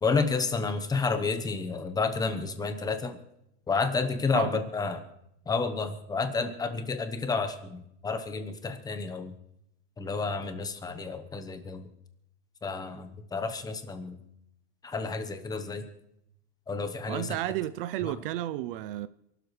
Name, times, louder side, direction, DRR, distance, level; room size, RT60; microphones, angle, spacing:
voice 1, 0.0-3.2 3.7-5.0 5.5-9.3 10.0-11.9 12.6-14.2 14.8-15.8 16.7-17.3 18.0-18.1, left 4 dB, 10° left, 1.0 m, -30 dB
voice 2, 17.1-19.1, right 13 dB, 50° right, 0.5 m, -32 dB
27.5 x 12.5 x 3.2 m
supercardioid pair, 160°, 35 cm